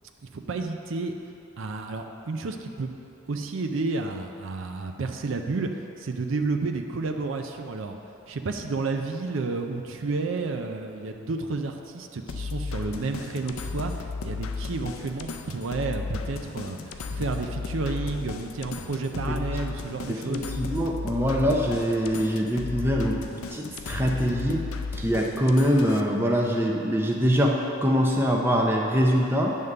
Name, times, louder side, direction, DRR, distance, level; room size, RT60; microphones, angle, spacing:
voice 1, 0.2-1.1 1.6-2.9 3.3-5.7 6.0-8.0 8.3-13.9 14.2-20.5, right 3 dB, 65° right, 4 dB, 0.5 m, -31 dB
sound 1, 12.3-26.0, left 4 dB, 80° left, 0.5 m, -35 dB
voice 2, 20.1-23.2 23.5-24.6 24.9-29.6, equal, 10° right, -1 dB, 0.6 m, -24 dB
9.4 x 3.6 x 6.6 m, 2.8 s
head